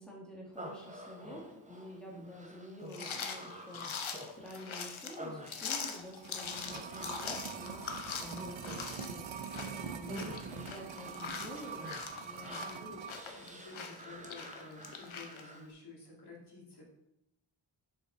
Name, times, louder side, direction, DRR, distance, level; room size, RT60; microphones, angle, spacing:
voice 1, 0.0-7.9 8.2-9.2 9.7-11.9 12.2-12.8 13.8-14.0, left 1 dB, ahead, -3 dB, 1.7 m, -48 dB
Human voice, 0.5-15.7, equal, 15° right, 0.9 m, -50 dB
sound 1, 2.9-15.4, left 5 dB, 90° left, 0.9 m, -42 dB
sound 2, 5.8-13.3 13.5-13.6, right 7 dB, 75° right, 0.6 m, -44 dB
voice 2, 12.5-16.8, left 3 dB, 55° left, -4 dB, 2.1 m, -51 dB
6.6 x 5.5 x 3.9 m, 0.83 s
wide cardioid pair, 90°, 46 cm